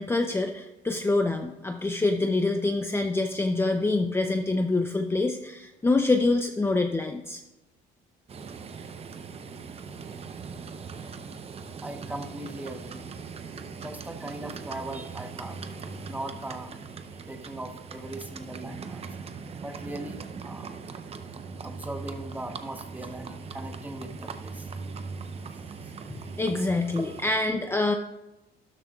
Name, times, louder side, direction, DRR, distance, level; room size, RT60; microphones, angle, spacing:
voice 1, 0.0-7.4 26.4-27.9, left 2 dB, 15° left, 5 dB, 0.6 m, -26 dB
Livestock farm animals working animals, 8.3-27.3, right 5 dB, 35° right, 0.7 m, -40 dB
voice 2, 11.8-13.1 13.8-15.7 16.0-16.9 17.3-19.2 19.6-20.7 21.6-24.7 25.5-25.9, right 1 dB, 10° right, 6 dB, 1.0 m, -39 dB
12.5 x 11.0 x 2.4 m, 0.98 s
cardioid pair, 110°, 17 cm